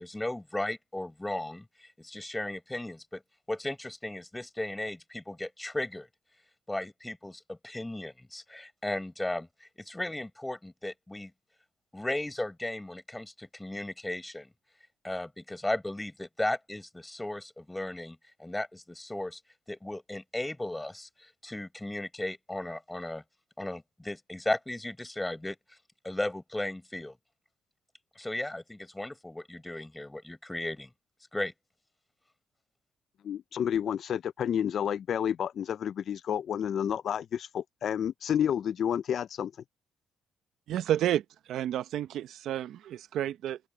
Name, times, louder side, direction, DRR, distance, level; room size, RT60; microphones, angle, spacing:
voice 1, 0.0-3.2 3.5-6.1 6.7-11.3 11.9-14.5 15.0-19.4 19.7-23.2 23.6-25.6 26.0-27.2 28.2-30.9 31.3-31.5, left 1 dB, 10° left, 5.6 m, -36 dB
voice 2, 33.2-39.5, left 9 dB, 65° left, 0.4 m, -30 dB
voice 3, 40.7-43.6, right 11 dB, 80° right, 0.7 m, -31 dB
open air
supercardioid pair, 65°, 0 cm